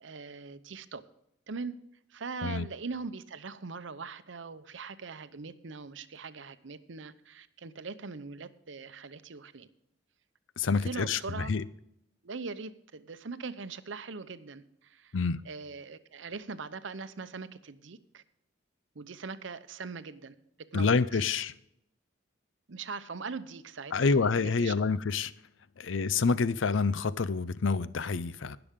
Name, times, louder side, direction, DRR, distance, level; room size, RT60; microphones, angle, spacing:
voice 1, 0.0-1.0 1.5-1.7 2.1-9.7 10.7-11.5 12.2-15.2 15.4-18.2 18.9-20.3 20.7-21.0 22.7-24.9, right 4 dB, 75° right, 0.7 m, -41 dB
voice 2, 10.6-11.6 15.1-15.4 20.7-21.5 23.9-25.3 25.8-28.6, left 4 dB, 80° left, 0.6 m, -27 dB
20.0 x 6.9 x 3.7 m
head